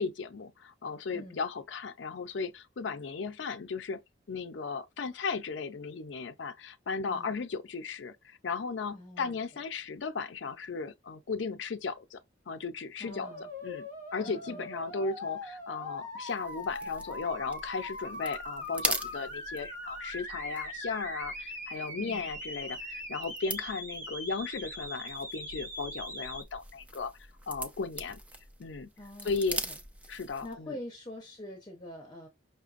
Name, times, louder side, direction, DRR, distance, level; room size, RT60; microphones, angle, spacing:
voice 1, 0.0-4.0 4.3-12.2 12.5-13.3 13.6-27.1 27.5-28.2 28.6-28.9 29.2-29.6 30.1-30.8, left 4 dB, 75° left, 0.5 m, -36 dB
voice 2, 8.9-9.4 13.0-13.5 14.2-14.7 22.0-22.3 29.0-29.8 30.4-32.3, left 1 dB, 25° left, 0.8 m, -45 dB
sound 1, 13.1-26.4, left 1 dB, 45° right, 1.0 m, -41 dB
sound 2, 16.3-30.6, right 1 dB, 10° right, 0.4 m, -42 dB
5.7 x 2.1 x 2.5 m
head